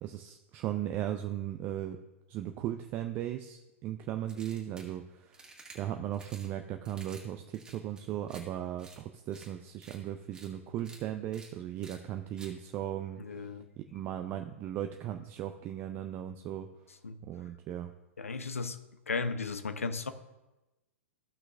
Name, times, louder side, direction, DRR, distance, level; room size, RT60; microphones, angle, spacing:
voice 1, 0.0-2.0 2.3-13.5 13.8-16.7 17.2-17.9, right 11 dB, 30° right, 6 dB, 0.5 m, -37 dB
sound 1, 4.3-4.9 5.3-5.8 6.1-6.5 6.8-7.2 7.5-8.4 8.8-9.0 9.3-9.5 9.8-10.0 10.3-10.5 10.8-11.0 11.3-11.5 11.8-12.0 12.4-12.5, right 3 dB, 10° right, 1.8 m, -52 dB
voice 2, 13.2-13.7 17.0-17.2 18.2-18.8 19.1-20.1, left 4 dB, 75° left, 11 dB, 0.8 m, -35 dB
15.0 x 5.8 x 2.5 m, 1.0 s
figure-of-eight pair, 105°, 7 cm